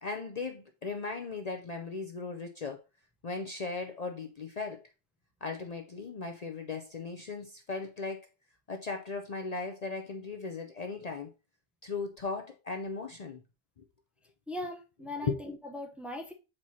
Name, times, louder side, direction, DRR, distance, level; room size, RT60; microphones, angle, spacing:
voice 1, 0.0-2.8 3.2-4.8 5.4-8.3 8.7-11.3 11.8-13.4 13.8-13.9 15.2-15.4, left 4 dB, 45° left, 0.7 m, -37 dB
voice 2, 14.5-16.3, left 1 dB, ahead, 0.7 m, -39 dB
7.4 x 4.7 x 2.8 m
omnidirectional pair, 1.1 m